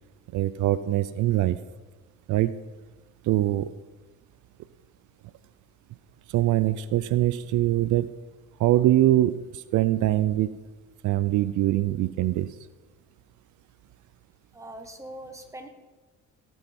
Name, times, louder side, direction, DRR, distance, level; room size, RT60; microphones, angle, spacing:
voice 1, 0.3-1.6 2.3-2.6 3.2-3.7 6.3-8.1 8.6-10.6 11.0-12.6, right 14 dB, 75° right, 15 dB, 0.5 m, -23 dB
voice 2, 14.5-15.7, right 1 dB, 10° right, 5 dB, 1.6 m, -41 dB
17.5 x 6.2 x 5.3 m, 1.3 s
cardioid pair, 90°, 30 cm